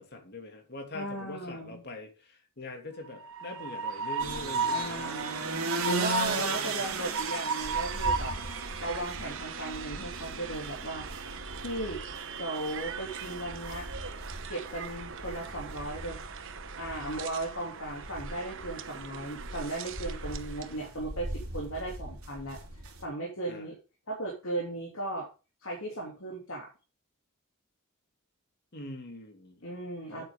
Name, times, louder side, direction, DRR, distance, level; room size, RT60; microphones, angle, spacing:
voice 1, 0.0-5.1 5.9-6.9 23.5-23.7 28.7-29.6 30.1-30.2, left 2 dB, 50° left, 3 dB, 2.6 m, -43 dB
voice 2, 0.9-1.8 4.7-5.4 5.8-8.3 8.8-11.1 11.6-12.0 12.4-13.9 14.5-16.2 16.8-22.6 23.0-23.8 24.1-25.3 25.6-26.7 29.6-30.2, right 1 dB, 65° left, -1 dB, 3.1 m, -36 dB
Train, 3.0-20.8, right 4 dB, 60° right, 1.0 m, -37 dB
sound 1, 4.2-23.0, right 3 dB, 80° right, 3.0 m, -38 dB
8.9 x 8.5 x 3.8 m, 0.31 s
head